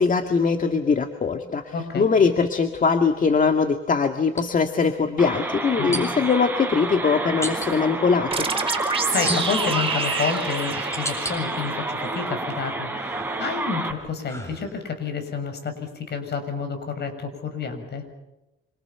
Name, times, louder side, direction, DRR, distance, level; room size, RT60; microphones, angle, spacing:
voice 1, 0.0-8.5, left 5 dB, 40° left, 6 dB, 2.0 m, -21 dB
sound 1, 1.4-1.6 4.3-4.5 5.9-6.4 7.4-7.7 9.3-9.8 10.4-11.4 11.9-12.6 13.0-15.0, equal, 15° left, 7.8 m, -33 dB
voice 2, 1.7-2.1 5.8-6.0 9.1-18.0, left 5 dB, 55° left, 7 dB, 6.8 m, -29 dB
sound 2, 5.2-13.9, right 2 dB, 10° right, 4.9 m, -29 dB
sound 3, 8.3-11.8, right 5 dB, 30° right, 4.9 m, -28 dB
27.5 x 27.5 x 6.0 m, 0.97 s
cardioid pair, 90°, 20 cm